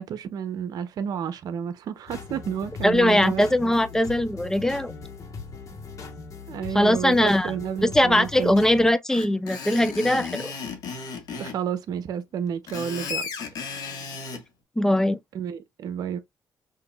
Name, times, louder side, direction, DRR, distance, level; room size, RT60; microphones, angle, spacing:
voice 1, 0.0-3.7 6.5-8.6 11.3-13.3 15.3-16.2, right 8 dB, 75° right, 0.8 m, -31 dB
sound 1, 2.1-8.9, left 4 dB, 55° left, 1.4 m, -40 dB
voice 2, 2.8-4.9 6.7-7.5 7.9-10.5 14.8-15.2, left 1 dB, 5° left, 0.5 m, -21 dB
Screech, 9.1-11.6 12.5-14.4, left 5 dB, 75° left, 1.5 m, -34 dB
5.6 x 2.8 x 2.4 m
cardioid pair, 90°, 7 cm